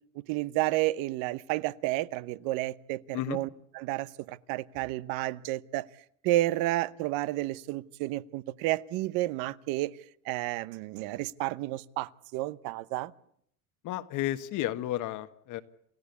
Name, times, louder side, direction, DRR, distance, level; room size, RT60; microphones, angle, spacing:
voice 1, 0.2-5.9 6.2-9.9 10.2-13.1, right 17 dB, 60° right, 17 dB, 0.9 m, -31 dB
voice 2, 13.8-15.6, left 14 dB, 50° left, 11 dB, 1.4 m, -32 dB
28.0 x 15.0 x 8.4 m, 0.70 s
supercardioid pair, 135°, 40 cm